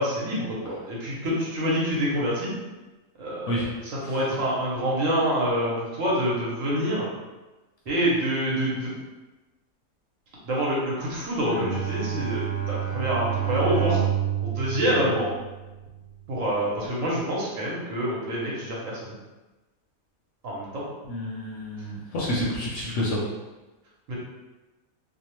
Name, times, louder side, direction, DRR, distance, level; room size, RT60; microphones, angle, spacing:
voice 1, 0.0-2.5 3.2-7.1 7.9-8.9 10.4-14.0 14.4-15.3 16.3-19.1 20.4-20.9 24.1-24.2, equal, 65° right, -5 dB, 1.1 m, -26 dB
Bowed string instrument, 11.5-15.9, right 10 dB, 5° right, 0.8 m, -28 dB
voice 2, 21.1-23.2, equal, 65° left, -4 dB, 0.8 m, -28 dB
2.7 x 2.0 x 2.9 m, 1.1 s
omnidirectional pair, 1.5 m